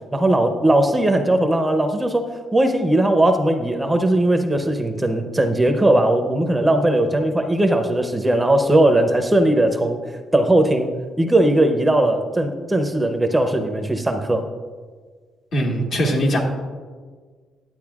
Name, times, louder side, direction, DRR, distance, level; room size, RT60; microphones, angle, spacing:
voice 1, 0.1-2.3 2.5-10.0 10.3-10.9 11.2-14.5, right 1 dB, 15° right, 6 dB, 0.7 m, -18 dB
voice 2, 15.5-16.4, equal, 60° left, -1 dB, 1.6 m, -20 dB
10.5 x 8.4 x 2.4 m, 1.5 s
cardioid pair, 90°, 0 cm